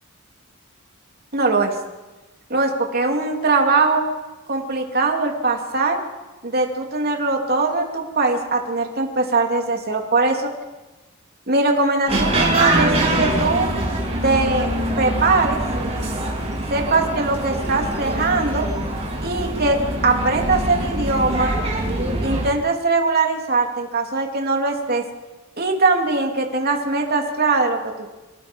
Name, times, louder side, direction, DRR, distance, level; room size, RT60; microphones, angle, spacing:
voice 1, 1.3-1.7 2.5-4.0 4.5-6.0 6.4-10.3 11.5-12.9 13.2-13.7 14.2-14.7 15.0-15.6 16.7-18.6 19.2-19.8 20.0-21.5 22.2-25.0 25.6-27.8, right 3 dB, 50° right, 2 dB, 3.3 m, -21 dB
sound 1, 12.1-22.5, right 1 dB, 30° right, 6.7 m, -23 dB
29.5 x 19.0 x 5.5 m, 1.1 s
head